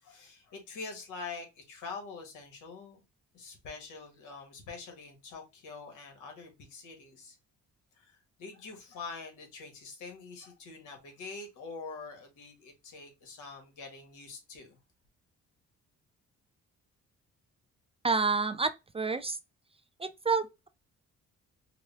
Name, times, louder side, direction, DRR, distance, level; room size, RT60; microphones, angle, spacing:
voice 1, 0.0-3.0 3.3-7.4 7.9-14.8, left 4 dB, 85° left, 1.5 m, -45 dB
voice 2, 18.0-19.4 20.0-20.7, right 4 dB, 20° right, 0.3 m, -29 dB
4.7 x 2.2 x 3.4 m
cardioid pair, 90°, 30 cm